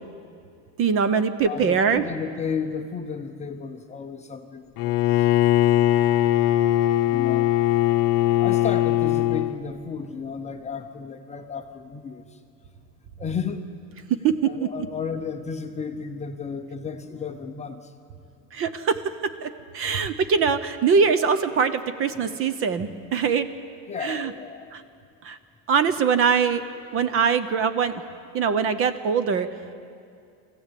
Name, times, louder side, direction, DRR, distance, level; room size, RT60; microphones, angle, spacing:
voice 1, 0.8-2.0 14.2-14.7 18.5-19.0 19.4-23.5 24.0-24.3 24.7-24.8 25.2-25.4 25.7-26.6 26.9-27.9 28.3-29.5, right 6 dB, 30° right, 12 dB, 0.8 m, -22 dB
voice 2, 1.4-6.3 7.1-7.5 8.4-12.4 13.2-13.6 14.4-17.9 23.9-24.7, left 6 dB, 15° left, 5 dB, 0.7 m, -33 dB
Bowed string instrument, 4.8-9.6, left 14 dB, 50° left, 0.9 m, -20 dB
22.5 x 15.0 x 8.5 m, 2.4 s
cardioid pair, 165°, 42 cm